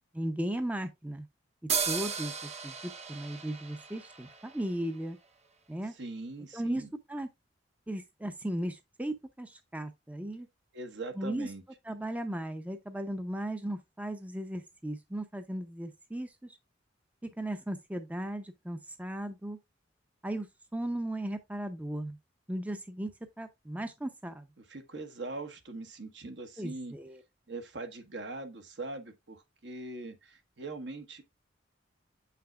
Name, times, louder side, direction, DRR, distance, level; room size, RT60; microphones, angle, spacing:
voice 1, 0.1-1.3 1.9-5.2 5.7-5.9 6.5-6.8 7.1-7.3 7.9-10.5 11.2-11.5 11.9-16.6 17.4-19.6 20.2-22.2 22.5-23.1 23.4-24.5 26.6-27.2, right 1 dB, 10° right, 0.6 m, -36 dB
sound 1, 1.7-5.2, right 6 dB, 35° right, 0.8 m, -36 dB
voice 2, 5.9-6.9 10.7-11.6 24.6-26.9 27.5-31.2, right 2 dB, 65° right, 1.2 m, -41 dB
7.6 x 5.8 x 2.3 m
head